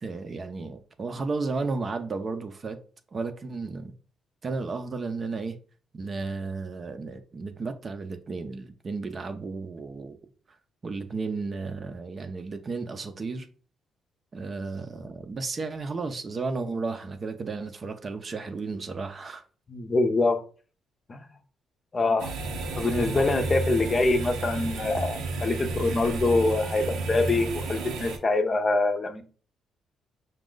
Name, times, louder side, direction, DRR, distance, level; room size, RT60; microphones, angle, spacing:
voice 1, 0.0-2.8 3.1-3.9 4.4-5.6 5.9-10.2 10.8-13.5 14.3-19.4, right 4 dB, 40° right, 0.6 m, -33 dB
voice 2, 19.7-20.4 21.1-21.2 21.9-22.3 22.7-29.2, left 3 dB, 35° left, 0.6 m, -25 dB
sound 1, 22.2-28.2, right 3 dB, 85° right, 0.8 m, -32 dB
5.1 x 2.3 x 3.8 m
cardioid pair, 90°, 0 cm